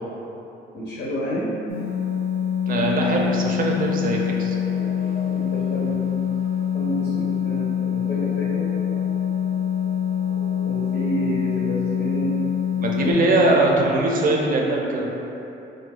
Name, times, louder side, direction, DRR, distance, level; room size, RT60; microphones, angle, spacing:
voice 1, 0.7-1.5 2.7-3.2 5.2-6.0 6.7-8.6 10.6-12.3 13.0-13.5, equal, 70° left, -6 dB, 0.6 m, -30 dB
sound 1, 1.7-13.1, left 9 dB, 90° right, 0.7 m, -25 dB
voice 2, 2.7-4.6 12.8-15.1, right 2 dB, 45° right, -1 dB, 0.5 m, -21 dB
sound 2, 4.5-12.0, left 2 dB, 15° left, 0.6 m, -43 dB
2.4 x 2.2 x 3.7 m, 3.0 s
cardioid pair, 90°, 20 cm